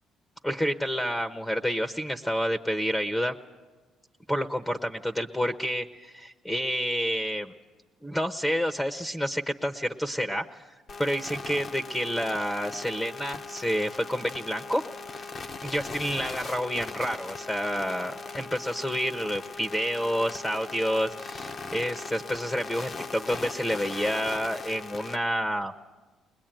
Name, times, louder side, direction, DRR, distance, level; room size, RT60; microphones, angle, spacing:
voice 1, 0.4-3.3 4.3-7.5 8.0-10.7 11.0-15.3 15.6-25.7, equal, 10° left, 7 dB, 0.9 m, -29 dB
sound 1, 10.9-25.2, left 4 dB, 40° left, 0.9 m, -39 dB
21.0 x 21.0 x 9.0 m, 1.3 s
cardioid pair, 100°, 0 cm